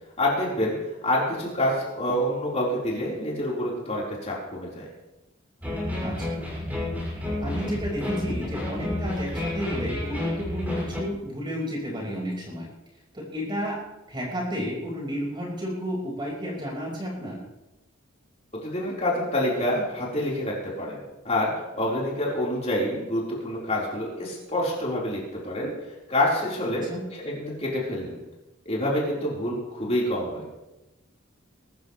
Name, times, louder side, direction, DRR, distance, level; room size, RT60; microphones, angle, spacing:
voice 1, 0.2-0.8 1.0-4.8 18.6-21.0 21.2-25.7 26.1-26.9 27.2-28.2 28.6-30.5, left 1 dB, 35° left, -5 dB, 4.5 m, -27 dB
sound 1, 5.6-11.0, left 1 dB, 10° right, 6.3 m, -30 dB
voice 2, 6.0-6.4 7.4-12.7 13.1-13.8 14.1-17.4 26.7-27.0, equal, 25° right, -3 dB, 5.4 m, -32 dB
22.5 x 13.0 x 3.4 m, 0.99 s
head